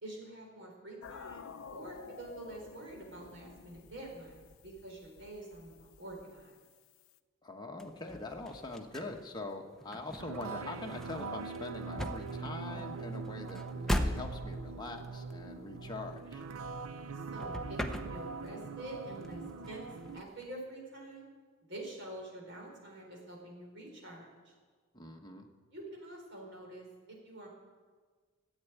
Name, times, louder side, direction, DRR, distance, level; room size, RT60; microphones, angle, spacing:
voice 1, 0.0-6.6 17.1-19.8 20.1-21.3 21.6-24.5 25.7-27.5, right 1 dB, 55° right, -1 dB, 4.1 m, -47 dB
sound 1, 1.0-7.2, left 6 dB, 75° left, 0.5 m, -52 dB
voice 2, 7.4-16.4 24.9-25.5, left 2 dB, 20° left, 2 dB, 1.2 m, -43 dB
sound 2, 7.8-17.1 17.4-18.6 18.9-20.4, left 1 dB, ahead, 0.7 m, -40 dB
sound 3, 10.2-20.2, right 4 dB, 90° right, 0.7 m, -42 dB
14.0 x 8.2 x 9.2 m, 1.5 s
head